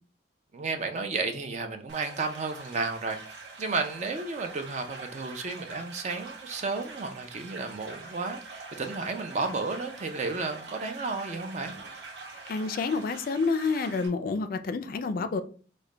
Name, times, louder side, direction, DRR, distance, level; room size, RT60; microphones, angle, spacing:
voice 1, 0.5-3.2 3.6-11.7, right 3 dB, 40° right, 0.4 m, -32 dB
sound 1, 1.9-14.1, right 3 dB, 75° right, 0.7 m, -45 dB
voice 2, 12.5-15.4, left 4 dB, 50° left, 0.3 m, -28 dB
3.2 x 2.1 x 3.7 m
head